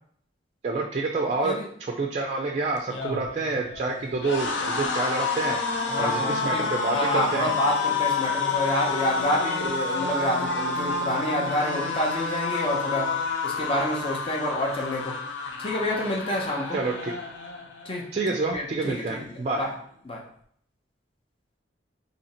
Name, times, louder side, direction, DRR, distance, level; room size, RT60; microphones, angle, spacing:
voice 1, 0.6-1.5 1.8-5.6 6.0-7.5 16.7-17.1 18.1-19.7, right 3 dB, 35° right, 1 dB, 0.3 m, -28 dB
sound 1, 2.8-18.0 18.3-18.5 18.8-19.6, left 4 dB, 75° left, 0.6 m, -29 dB
voice 2, 5.9-6.6 6.9-13.1 13.4-15.1 15.6-16.8 17.8-18.1 18.5-19.7 20.0-20.2, left 1 dB, 30° left, -1 dB, 0.8 m, -28 dB
Speech, 8.9-14.0, left 3 dB, 55° left, 0.9 m, -46 dB
2.8 x 2.8 x 4.2 m, 0.64 s
head